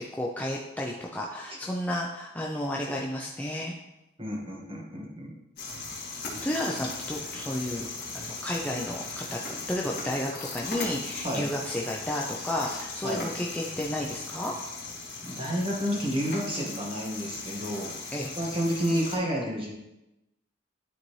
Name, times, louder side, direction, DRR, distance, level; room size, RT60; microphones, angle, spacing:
voice 1, 0.1-3.7 6.4-7.9 8.1-14.5 18.1-18.3, left 1 dB, 10° left, -2 dB, 0.5 m, -32 dB
voice 2, 4.2-5.3 11.2-11.5 13.0-13.3 15.2-19.7, equal, 25° right, -3 dB, 1.6 m, -30 dB
sound 1, 5.6-19.2, left 3 dB, 50° left, 2.0 m, -38 dB
11.5 x 4.0 x 3.2 m, 0.94 s
head